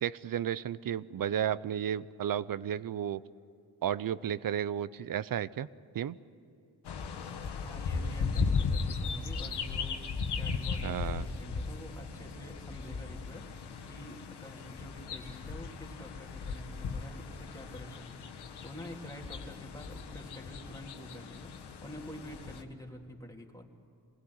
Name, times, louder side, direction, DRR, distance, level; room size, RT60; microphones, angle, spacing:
voice 1, 0.0-3.2 3.8-5.7 5.9-6.2 10.8-11.2, right 10 dB, 60° right, 18 dB, 0.7 m, -33 dB
sound 1, 6.8-22.6, left 5 dB, 85° left, 1.5 m, -37 dB
voice 2, 7.5-10.0 10.3-23.6, equal, 10° left, 0 dB, 3.2 m, -48 dB
24.5 x 17.0 x 9.7 m, 2.4 s
cardioid pair, 70°, 39 cm